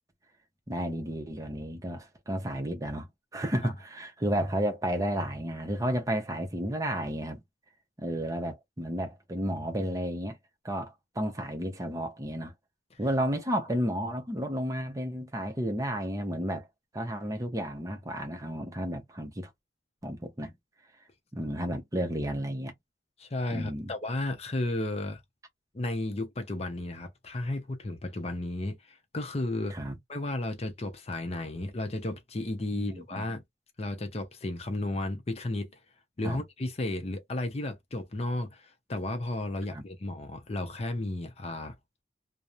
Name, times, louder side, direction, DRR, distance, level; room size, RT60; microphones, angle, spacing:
voice 1, 0.7-7.4 8.0-10.4 10.6-12.5 13.0-16.7 16.9-19.5 20.0-20.5 21.3-22.7 23.5-23.9 29.7-29.9 32.7-33.3 36.2-36.4 39.7-39.8, equal, 20° right, 0.6 m, -32 dB
voice 2, 23.2-25.2 25.7-29.8 30.1-33.4 33.8-35.7 36.2-41.8, left 2 dB, 35° left, 0.6 m, -33 dB
2.9 x 2.0 x 2.4 m
head